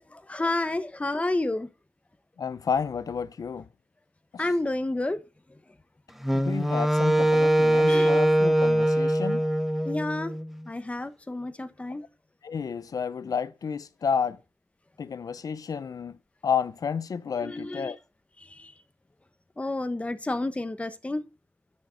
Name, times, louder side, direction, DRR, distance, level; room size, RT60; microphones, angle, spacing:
voice 1, 0.0-1.7 4.4-5.2 7.9-8.2 9.8-10.3 10.7-12.0 17.4-17.9 18.4-18.7 19.6-21.2, left 2 dB, 20° left, 1.1 m, -30 dB
voice 2, 2.4-3.6 4.3-4.4 6.3-9.5 12.4-14.4 15.0-16.2 16.4-18.0, left 6 dB, 80° left, 0.7 m, -31 dB
Wind instrument woodwind instrument, 6.2-10.5, right 1 dB, 5° right, 0.9 m, -22 dB
9.9 x 6.3 x 6.4 m
wide cardioid pair, 110°, 6 cm